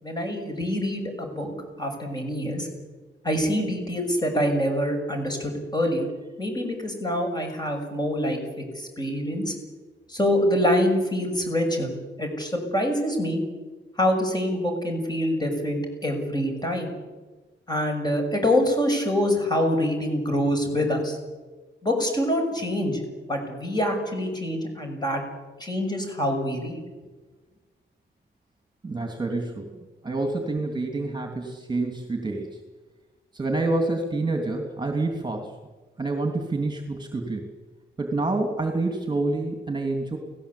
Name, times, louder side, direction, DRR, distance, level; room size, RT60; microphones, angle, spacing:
voice 1, 0.0-2.7 3.2-6.1 6.4-9.5 10.1-11.9 12.2-13.4 14.0-16.9 17.7-21.2 21.8-23.0 23.3-25.2 25.6-26.8, equal, 20° left, 3 dB, 6.5 m, -25 dB
voice 2, 28.8-29.7 30.0-32.6 33.3-35.5 36.0-37.5 38.0-40.2, right 2 dB, 20° right, 4 dB, 2.8 m, -27 dB
29.5 x 18.0 x 8.5 m, 1.3 s
wide cardioid pair, 165°, 20 cm